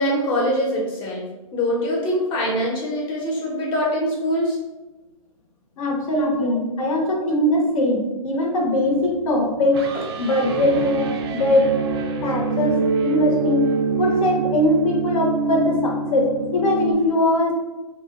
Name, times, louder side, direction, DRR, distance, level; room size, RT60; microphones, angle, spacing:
voice 1, 0.0-4.6 6.2-6.5 7.2-7.3, equal, 25° left, -3 dB, 0.8 m, -24 dB
voice 2, 5.8-11.7 12.2-13.7 14.0-17.5, left 1 dB, 65° left, 0 dB, 0.9 m, -21 dB
sound 1, 8.7-16.9, right 4 dB, 45° right, 0.4 m, -26 dB
2.7 x 2.2 x 3.4 m, 1.1 s
hypercardioid pair, 145°, 19 cm